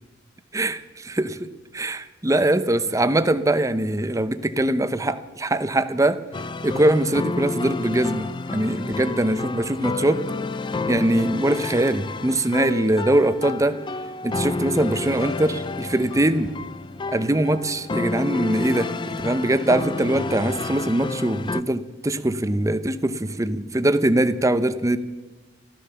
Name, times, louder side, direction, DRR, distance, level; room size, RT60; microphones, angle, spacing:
voice 1, 1.1-6.2 6.6-10.2 10.9-13.8 14.2-16.5 17.1-25.0, right 1 dB, 15° right, 11 dB, 0.7 m, -22 dB
sound 1, 6.3-21.6, left 3 dB, 25° left, 0.4 m, -30 dB
13.5 x 13.5 x 6.8 m, 1.2 s
head